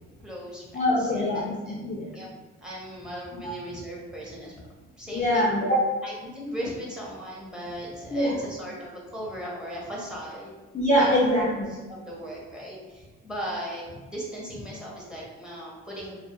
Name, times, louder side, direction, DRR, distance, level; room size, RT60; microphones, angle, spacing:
voice 1, 0.2-1.7 2.1-2.3 2.6-4.5 5.0-5.5 6.0-10.5 11.0-11.2 11.7-16.2, equal, 5° right, -4 dB, 0.7 m, -37 dB
voice 2, 0.7-2.1 3.4-3.5 5.1-5.8 8.1-8.4 10.7-11.7, equal, 25° left, -5 dB, 0.4 m, -23 dB
2.3 x 2.1 x 2.7 m, 1.3 s
cardioid pair, 90°, 30 cm